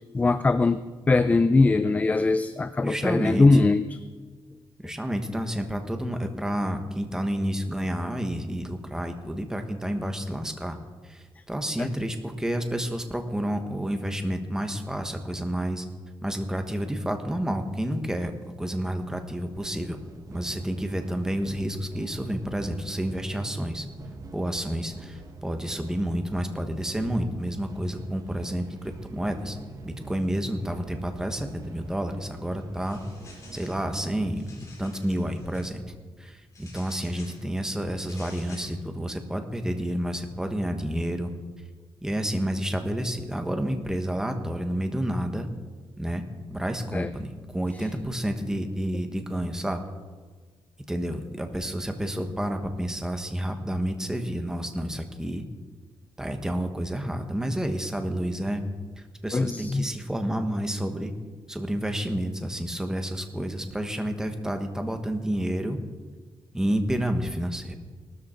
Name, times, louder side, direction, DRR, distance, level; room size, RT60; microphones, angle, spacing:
voice 1, 0.1-0.8 1.1-4.0 11.8-11.9 46.9-47.1 59.3-59.9, left 3 dB, 15° left, 12 dB, 0.4 m, -21 dB
voice 2, 2.8-3.6 4.8-10.8 11.0-15.8 16.2-18.3 18.6-20.0 20.3-23.9 24.3-29.6 29.8-33.0 33.5-41.3 42.0-45.5 46.0-46.2 46.5-49.8 50.9-55.4 56.2-58.6 59.0-61.1 61.5-65.8 66.5-67.7, equal, 5° right, 6 dB, 1.3 m, -30 dB
sound 1, 19.6-34.3, right 3 dB, 40° right, 1.5 m, -44 dB
sound 2, 32.7-33.9 34.2-35.7 36.5-37.4 38.0-38.7, left 3 dB, 35° left, 4.3 m, -50 dB
18.5 x 13.0 x 4.4 m, 1.4 s
wide cardioid pair, 160°, 9 cm